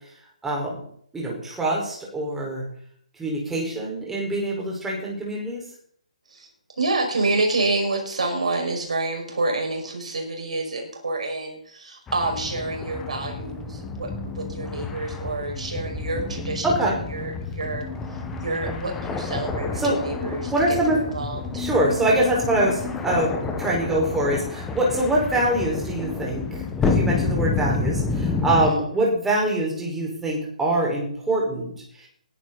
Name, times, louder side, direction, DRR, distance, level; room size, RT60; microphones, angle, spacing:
voice 1, 0.4-0.8 1.1-2.6 3.2-5.6 16.6-17.0 19.8-20.0 20.5-21.0 21.6-32.1, right 1 dB, 5° right, -3 dB, 5.1 m, -24 dB
voice 2, 6.8-16.7 17.1-17.9 18.4-21.4 28.5-28.8, right 2 dB, 65° right, 1 dB, 5.9 m, -28 dB
sound 1, 12.1-28.7, left 4 dB, 10° left, 1.4 m, -29 dB
20.5 x 11.0 x 4.2 m, 0.64 s
figure-of-eight pair, 135°, 4 cm